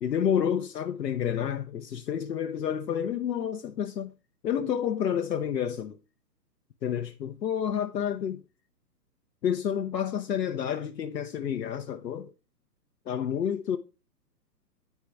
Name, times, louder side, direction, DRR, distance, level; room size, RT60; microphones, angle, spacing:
voice 1, 0.0-4.1 4.4-6.0 6.8-8.4 9.4-12.3 13.1-13.8, left 8 dB, 80° left, 0.8 m, -29 dB
8.5 x 4.6 x 3.3 m
hypercardioid pair, 130°, 50 cm